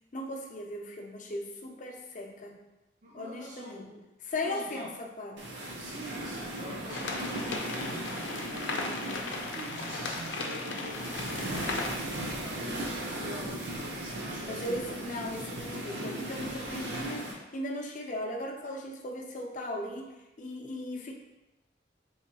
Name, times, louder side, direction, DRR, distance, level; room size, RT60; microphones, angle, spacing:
voice 1, 0.1-2.6 3.1-3.9 4.2-5.5 14.4-21.1, left 1 dB, 40° left, 1 dB, 0.5 m, -37 dB
voice 2, 3.0-4.0 4.4-4.9 5.6-14.9 16.4-16.8, right 1 dB, 45° right, -4 dB, 0.5 m, -46 dB
sound 1, 5.4-17.3, right 1 dB, 70° right, 0.8 m, -37 dB
sound 2, 6.9-12.0, left 3 dB, 85° left, 0.6 m, -37 dB
4.5 x 3.1 x 2.9 m, 1.0 s
head